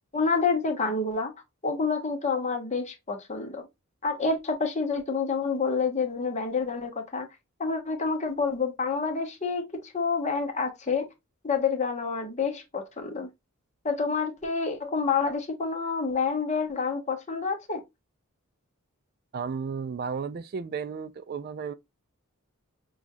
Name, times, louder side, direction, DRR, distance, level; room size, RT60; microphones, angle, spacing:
voice 1, 0.1-1.3 1.6-3.7 4.0-7.3 7.6-11.1 11.4-13.3 13.8-17.8, left 4 dB, 30° left, 1.0 m, -28 dB
voice 2, 19.3-21.7, right 6 dB, 45° right, 0.4 m, -33 dB
6.0 x 2.4 x 2.6 m
head